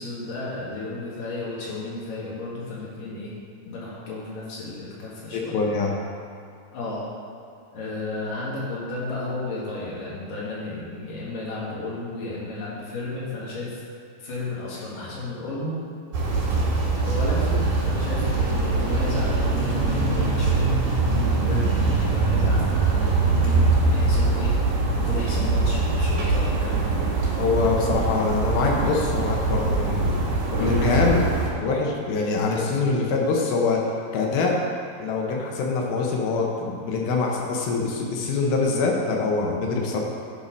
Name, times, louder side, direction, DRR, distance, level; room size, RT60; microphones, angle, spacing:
voice 1, 0.0-3.3 3.7-5.6 6.7-7.1 7.7-13.8 14.2-15.8 17.0-20.7 21.0-27.1, left 2 dB, 65° left, -7 dB, 3.5 m, -33 dB
voice 2, 5.3-5.9 27.4-30.1 30.5-33.8 34.1-34.6 35.0-40.0, left 4 dB, 80° left, -1 dB, 2.9 m, -24 dB
sound 1, 16.1-31.5, right 3 dB, 90° right, 3.6 m, -23 dB
11.0 x 4.2 x 5.3 m, 2.5 s
omnidirectional pair, 4.2 m